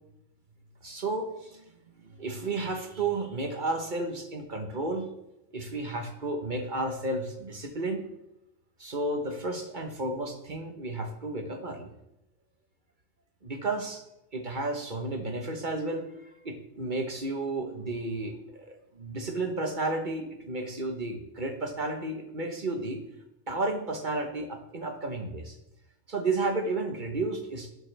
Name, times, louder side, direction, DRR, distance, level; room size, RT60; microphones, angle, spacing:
voice 1, 0.8-1.6 2.0-5.1 5.5-8.0 8.8-11.9 13.4-14.0 14.3-23.0 23.5-25.6 26.1-27.7, right 2 dB, 40° right, 5 dB, 1.2 m, -32 dB
11.5 x 11.0 x 3.4 m, 0.87 s
omnidirectional pair, 1.3 m